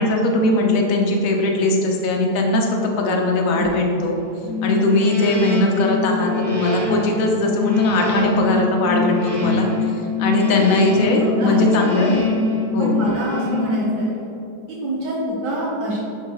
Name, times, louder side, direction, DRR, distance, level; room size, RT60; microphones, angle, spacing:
voice 1, 0.0-4.2 4.6-9.7 10.2-12.1 12.7-13.0, left 2 dB, 55° left, 1 dB, 1.2 m, -19 dB
sound 1, 4.4-14.4, left 4 dB, 60° right, 1.6 m, -24 dB
voice 2, 8.0-8.4 10.5-10.6 11.2-11.7 12.0-12.2 12.8-14.1 14.7-16.0, right 1 dB, 80° right, -6 dB, 1.8 m, -26 dB
10.5 x 4.6 x 3.1 m, 2.7 s
omnidirectional pair, 1.9 m